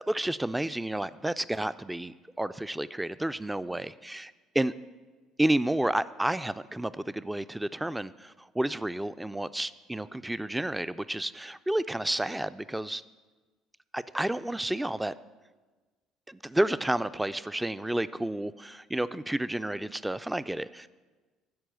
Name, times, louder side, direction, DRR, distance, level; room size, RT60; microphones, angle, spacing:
voice 1, 0.1-4.7 5.4-13.0 13.9-15.1 16.3-20.9, right 1 dB, 10° right, 15 dB, 0.3 m, -31 dB
10.0 x 4.7 x 7.6 m, 1.3 s
hypercardioid pair, 60°, 0 cm